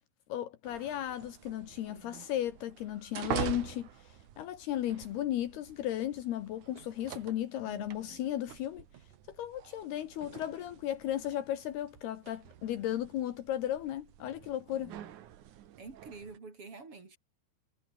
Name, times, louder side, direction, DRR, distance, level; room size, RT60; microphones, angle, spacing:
voice 1, 0.3-8.9 9.3-14.9, left 12 dB, 70° left, 3.2 m, -35 dB
sound 1, 0.6-16.4, right 11 dB, 60° right, 2.3 m, -45 dB
voice 2, 1.9-2.3 7.7-8.4 14.7-15.1 15.8-17.2, right 4 dB, 35° right, 4.3 m, -49 dB
omnidirectional pair, 5.0 m